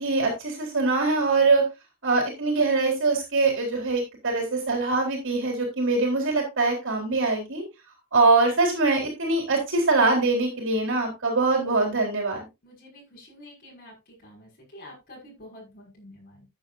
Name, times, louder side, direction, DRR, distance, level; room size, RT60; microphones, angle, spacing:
voice 1, 0.0-1.6 2.0-7.6 8.1-12.5, right 3 dB, 60° right, 1 dB, 4.1 m, -23 dB
voice 2, 12.6-16.5, left 1 dB, 40° left, -4 dB, 5.9 m, -48 dB
13.5 x 8.8 x 2.6 m, 0.24 s
head